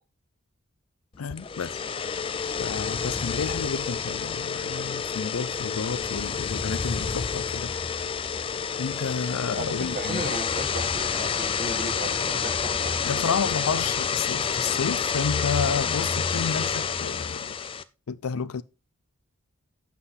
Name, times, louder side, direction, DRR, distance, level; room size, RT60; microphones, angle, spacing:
voice 1, 1.2-1.8 2.6-7.7 8.8-10.3 13.0-17.6 18.1-18.6, left 6 dB, 80° left, 0.5 m, -30 dB
sound 1, 1.3-17.8, left 6 dB, 25° left, 0.3 m, -29 dB
voice 2, 9.5-13.4, right 1 dB, 35° right, 1.4 m, -36 dB
7.9 x 5.8 x 4.0 m
head